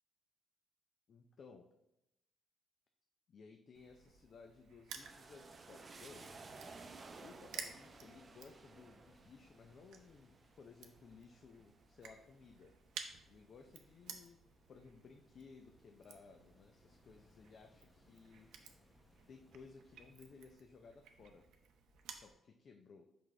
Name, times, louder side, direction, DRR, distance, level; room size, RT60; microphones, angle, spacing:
voice 1, 1.1-1.7 3.3-6.4 7.2-12.8 13.3-14.4 14.7-18.5 19.3-21.5 22.1-23.1, left 4 dB, 55° left, 4 dB, 0.5 m, -59 dB
Crushing, 3.7-22.3, right 7 dB, 80° right, 0.6 m, -55 dB
sound 1, 5.0-12.7 13.1-13.9, right 3 dB, 40° right, 0.6 m, -56 dB
sound 2, 5.8-20.6, left 1 dB, 15° left, 0.7 m, -71 dB
6.0 x 5.0 x 3.2 m, 0.86 s
cardioid pair, 90°, 0 cm